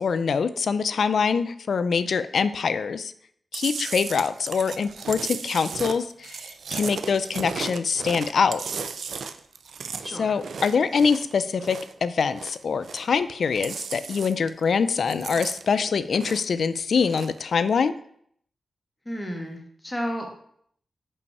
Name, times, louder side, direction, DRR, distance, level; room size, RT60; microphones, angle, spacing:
voice 1, 0.0-3.1 3.5-8.6 10.2-17.9, left 5 dB, 75° left, 13 dB, 0.4 m, -24 dB
Chewing mastication, 3.5-12.0 12.3-13.2 13.5-14.6 14.9-16.6 16.9-17.4, right 5 dB, 80° right, 0.4 m, -35 dB
voice 2, 19.0-20.3, equal, 15° left, 2 dB, 1.4 m, -32 dB
5.4 x 5.3 x 4.7 m, 0.66 s
wide cardioid pair, 85°, 0 cm